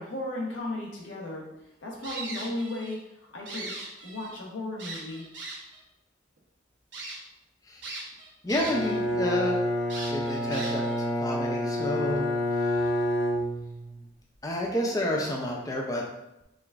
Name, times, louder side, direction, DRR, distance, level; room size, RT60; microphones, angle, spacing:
voice 1, 0.0-1.5 1.8-3.0 3.3-3.7 4.0-5.3, left 2 dB, 90° left, -2 dB, 1.1 m, -35 dB
sound 1, 2.0-3.0 3.3-4.4 4.8-5.8 6.4-6.5 6.9-7.2 7.8-9.0 9.3-9.4 9.9-11.0, right 3 dB, 75° right, 1.2 m, -39 dB
voice 2, 8.4-9.6 10.1-10.8 11.2-12.3 14.4-16.0, left 1 dB, 20° left, -2 dB, 0.5 m, -29 dB
Bowed string instrument, 8.5-14.0, left 1 dB, 70° left, 0.7 m, -28 dB
4.9 x 2.4 x 3.4 m, 0.91 s
head